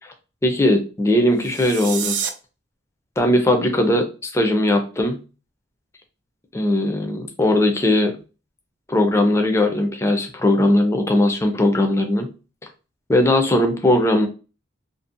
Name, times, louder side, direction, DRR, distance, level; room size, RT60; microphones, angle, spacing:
voice 1, 0.4-2.2 3.2-5.2 6.5-8.1 8.9-12.3 13.1-14.3, left 1 dB, 15° left, 4 dB, 0.4 m, -19 dB
sound 1, 1.3-2.3, right 7 dB, 60° right, 0.3 m, -28 dB
2.5 x 2.0 x 2.5 m, 0.32 s
head